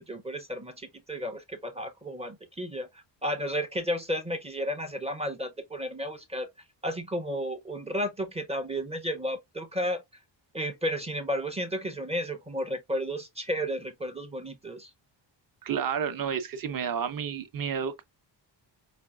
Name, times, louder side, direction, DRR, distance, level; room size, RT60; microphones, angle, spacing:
voice 1, 0.0-6.5 6.8-10.0 10.5-14.9, equal, 15° right, 0.5 m, -33 dB
voice 2, 15.6-18.0, right 7 dB, 45° right, 0.7 m, -31 dB
5.0 x 2.5 x 2.2 m
wide cardioid pair, 160°, 46 cm